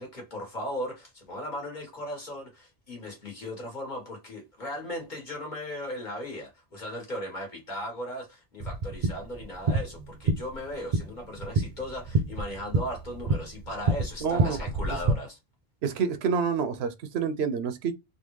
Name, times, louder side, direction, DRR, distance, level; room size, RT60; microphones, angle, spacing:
voice 1, 0.0-15.4, equal, 45° left, 1.5 m, -37 dB
sound 1, 8.6-15.1, right 3 dB, 50° right, 0.5 m, -28 dB
voice 2, 14.2-14.6 15.8-17.9, right 6 dB, 80° right, 0.8 m, -28 dB
3.5 x 2.3 x 3.1 m
omnidirectional pair, 1.1 m